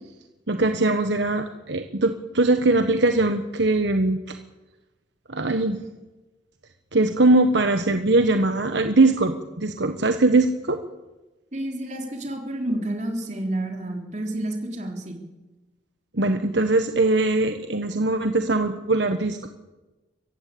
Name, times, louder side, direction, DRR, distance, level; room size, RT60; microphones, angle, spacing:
voice 1, 0.5-4.2 5.3-5.8 6.9-10.8 16.1-19.5, right 2 dB, 70° right, 7 dB, 1.2 m, -21 dB
voice 2, 11.5-15.2, right 1 dB, 40° right, 2 dB, 3.9 m, -30 dB
23.5 x 15.5 x 8.5 m, 1.1 s
head